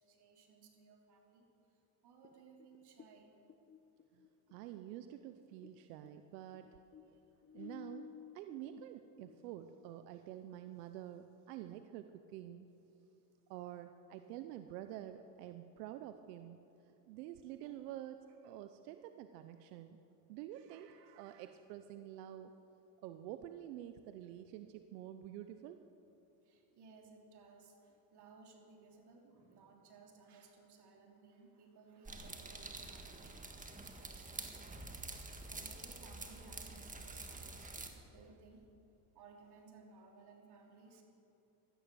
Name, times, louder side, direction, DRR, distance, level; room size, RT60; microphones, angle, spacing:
voice 1, 0.0-1.4 2.0-3.3 26.4-34.9 35.2-38.7 39.1-41.0, right 4 dB, 55° right, 2 dB, 3.3 m, -61 dB
sound 1, 2.2-5.8 6.0-10.2, left 7 dB, 30° left, 0.9 m, -56 dB
voice 2, 4.5-7.2 7.5-12.7 13.5-16.6 16.9-20.0 20.3-22.5 23.0-25.8 33.1-33.3 37.4-37.6 37.9-38.4, right 12 dB, 90° right, 9 dB, 0.8 m, -49 dB
sound 2, 32.0-37.9, right 3 dB, 15° right, 1.8 m, -48 dB
16.0 x 12.5 x 6.9 m, 2.8 s
supercardioid pair, 95°, 46 cm